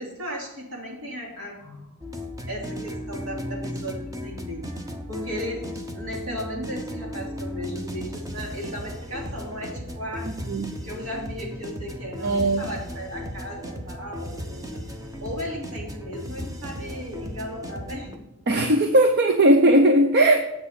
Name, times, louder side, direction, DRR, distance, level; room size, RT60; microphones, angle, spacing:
voice 1, 0.0-2.0 2.5-4.7 5.1-5.7 5.9-10.3 10.7-14.8 15.2-18.2, equal, 70° right, -2 dB, 3.2 m, -36 dB
sound 1, 2.0-18.2, left 1 dB, 15° right, 0.9 m, -35 dB
voice 2, 12.2-12.6 18.5-20.4, right 1 dB, 50° right, 5 dB, 0.7 m, -18 dB
7.9 x 6.4 x 7.0 m, 0.89 s
head